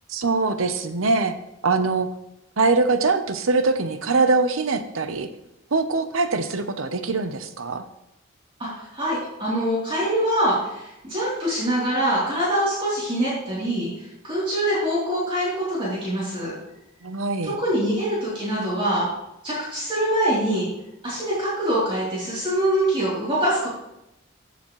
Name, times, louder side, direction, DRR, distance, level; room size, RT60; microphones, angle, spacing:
voice 1, 0.1-1.3 1.6-2.1 2.6-5.3 5.7-7.9 17.0-17.6, right 3 dB, 80° right, 9 dB, 0.9 m, -22 dB
voice 2, 8.6-13.9 14.2-16.5 17.4-19.1 19.4-20.7 21.0-23.7, right 1 dB, 25° right, -9 dB, 3.4 m, -24 dB
14.5 x 7.0 x 3.2 m, 0.86 s
head